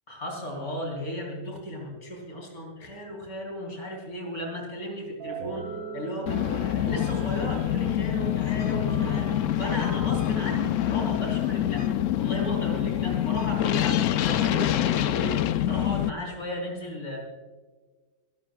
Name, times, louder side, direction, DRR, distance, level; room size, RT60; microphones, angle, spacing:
voice 1, 0.1-11.9 12.2-15.4 15.6-17.2, equal, 60° left, -1 dB, 4.7 m, -35 dB
sound 1, 5.2-10.9, right 4 dB, 70° right, 2.4 m, -40 dB
sound 2, 6.3-16.1, left 12 dB, 75° left, 0.7 m, -26 dB
29.5 x 12.5 x 2.4 m, 1.4 s
omnidirectional pair, 1.8 m